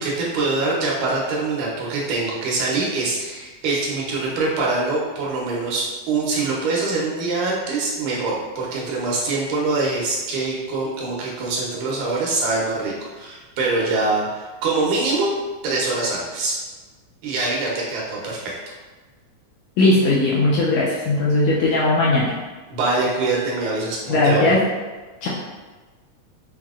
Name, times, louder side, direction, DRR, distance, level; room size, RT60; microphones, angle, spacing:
voice 1, 0.0-15.3 15.6-16.6 17.2-18.6 22.7-24.6, right 3 dB, 90° right, -4 dB, 2.3 m, -24 dB
voice 2, 19.8-22.3 24.1-24.6 25.2-25.3, left 2 dB, 80° left, -6 dB, 1.5 m, -18 dB
5.8 x 2.0 x 2.4 m, 1.3 s
omnidirectional pair, 3.4 m